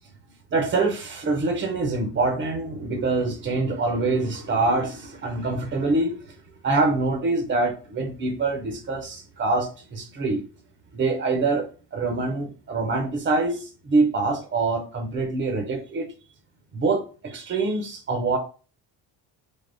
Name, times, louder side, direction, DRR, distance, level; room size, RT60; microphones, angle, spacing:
voice 1, 0.5-6.4 6.6-10.4 10.9-16.1 16.7-18.4, right 3 dB, 25° right, 4 dB, 0.5 m, -25 dB
3.8 x 3.4 x 2.5 m, 0.37 s
cardioid pair, 145°, 45 cm